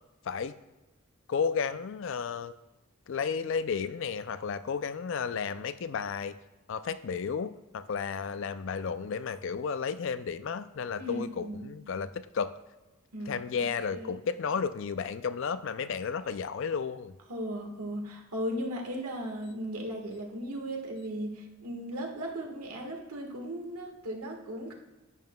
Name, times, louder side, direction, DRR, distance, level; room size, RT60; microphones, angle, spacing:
voice 1, 1.3-2.5 3.1-6.3 6.7-12.5 13.3-17.1, left 6 dB, 55° left, 13 dB, 0.4 m, -33 dB
voice 2, 11.0-11.7 13.1-14.1 17.3-24.7, equal, 90° right, 1 dB, 1.5 m, -37 dB
10.5 x 9.3 x 2.3 m, 1.1 s
head